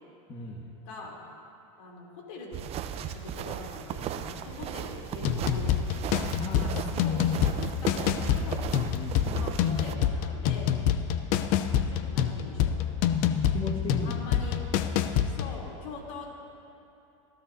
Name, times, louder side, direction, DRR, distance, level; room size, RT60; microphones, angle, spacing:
voice 1, 0.3-0.7 6.4-6.9 8.9-9.4 13.5-14.4, left 3 dB, 30° left, -2 dB, 1.7 m, -36 dB
voice 2, 0.8-1.2 1.8-5.9 6.6-8.7 9.4-10.8 11.9-12.8 14.0-14.6 15.2-16.3, left 3 dB, 70° left, -2 dB, 3.4 m, -43 dB
sound 1, 2.5-9.9, right 9 dB, 40° right, 0.7 m, -36 dB
sound 2, 5.2-15.6, left 9 dB, 55° left, 0.7 m, -27 dB
21.5 x 15.0 x 2.8 m, 2.9 s
supercardioid pair, 115°, 16 cm